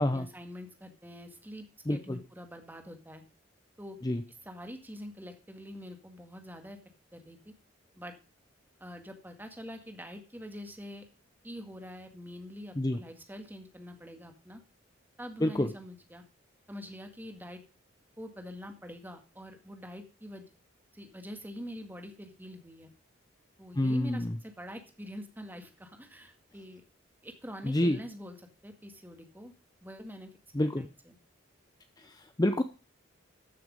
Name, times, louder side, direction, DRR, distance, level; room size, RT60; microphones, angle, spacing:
voice 1, 0.0-3.2 3.8-4.0 4.4-6.8 7.1-7.5 8.0-8.1 8.8-11.1 11.4-14.6 15.2-16.2 16.7-17.6 18.2-20.5 20.9-22.9 23.6-26.8 27.2-28.4 28.6-29.5 29.8-30.3 30.6-31.2, equal, 10° right, 5 dB, 1.9 m, -45 dB
voice 2, 1.9-2.2 4.0-4.2 12.8-13.0 15.4-15.7 23.8-24.3 27.6-28.0 30.5-30.9 32.0-32.6, left 1 dB, 20° left, 9 dB, 0.7 m, -28 dB
14.0 x 6.6 x 5.3 m, 0.34 s
head